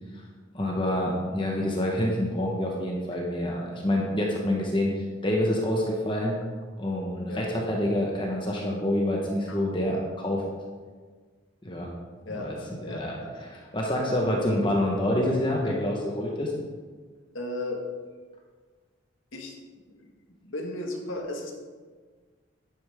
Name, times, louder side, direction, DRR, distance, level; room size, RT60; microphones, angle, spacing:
voice 1, 0.5-6.3 6.8-10.4 11.6-11.9 12.3-12.5 12.9-16.5, left 1 dB, 25° left, -1 dB, 1.2 m, -27 dB
voice 2, 12.3-13.3 17.3-17.8 19.3-19.5 19.9-20.1 20.4-21.5, left 1 dB, 80° left, 1 dB, 1.8 m, -35 dB
11.0 x 8.9 x 3.6 m, 1.5 s
head